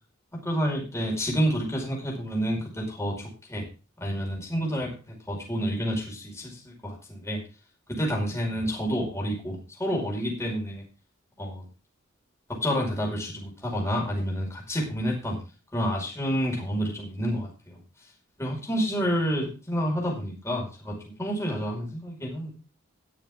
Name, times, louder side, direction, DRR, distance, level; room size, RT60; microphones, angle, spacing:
voice 1, 0.4-3.6 4.0-4.9 5.3-7.4 7.9-10.8 11.4-11.6 12.6-15.4 15.7-17.8 18.4-22.5, equal, 15° left, -1 dB, 5.2 m, -29 dB
20.5 x 7.1 x 3.6 m, 0.34 s
head